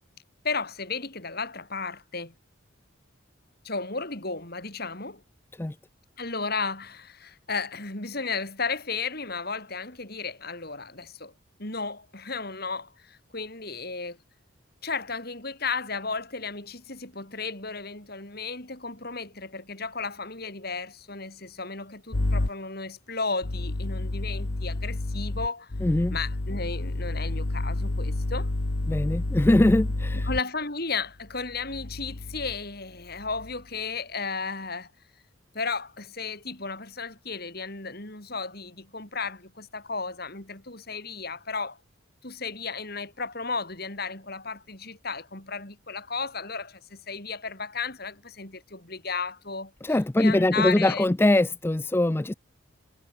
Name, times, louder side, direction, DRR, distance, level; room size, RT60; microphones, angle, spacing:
voice 1, 0.4-2.3 3.6-5.2 6.2-11.3 11.6-14.2 14.8-25.7 26.1-28.5 30.3-34.9 35.5-41.8 42.2-51.1, left 4 dB, 50° left, 5.0 m, -34 dB
sound 1, 22.1-22.5 23.4-30.4 31.4-32.6 33.1-33.6, left 2 dB, 85° left, 1.3 m, -30 dB
voice 2, 25.8-26.2 28.9-30.3 49.8-52.3, left 1 dB, 10° left, 0.3 m, -22 dB
head